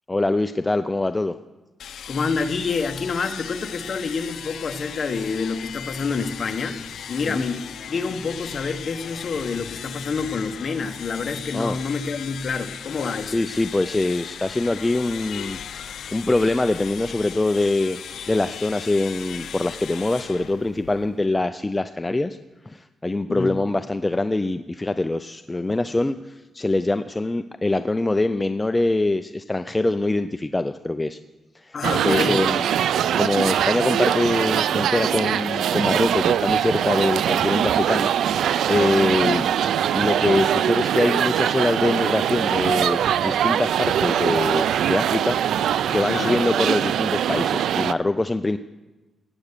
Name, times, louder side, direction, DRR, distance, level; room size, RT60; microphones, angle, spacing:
voice 1, 0.1-1.3 7.3-7.4 11.5-11.8 13.3-15.6 16.1-18.0 18.3-22.4 22.7-26.2 26.5-31.2 31.6-32.6 33.2-38.4 38.7-39.4 39.9-45.4 45.9-48.6, left 2 dB, 15° left, 9 dB, 0.4 m, -23 dB
sound 1, 1.8-21.3, left 8 dB, 70° left, 0.5 m, -37 dB
voice 2, 2.1-6.8 7.1-13.4 23.3-23.6 31.7-32.4 39.1-39.4 46.1-46.4, left 4 dB, 40° left, 7 dB, 1.1 m, -27 dB
sound 2, 31.8-47.9, right 9 dB, 85° right, 0.4 m, -22 dB
18.0 x 8.0 x 6.7 m, 1.1 s
cardioid pair, 130°, 0 cm